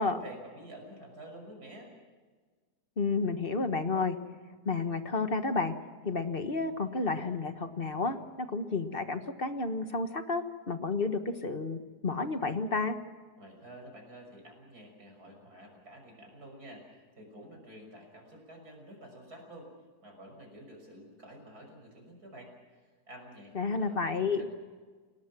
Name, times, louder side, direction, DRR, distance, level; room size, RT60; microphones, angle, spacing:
voice 1, 0.0-1.9 13.4-19.7 20.0-22.5 23.1-24.5, right 1 dB, 60° right, 2 dB, 6.6 m, -49 dB
voice 2, 3.0-4.2 4.6-5.7 6.0-12.9 23.5-24.4, left 3 dB, 35° left, 8 dB, 1.4 m, -31 dB
29.5 x 18.5 x 6.1 m, 1.5 s
omnidirectional pair, 1.8 m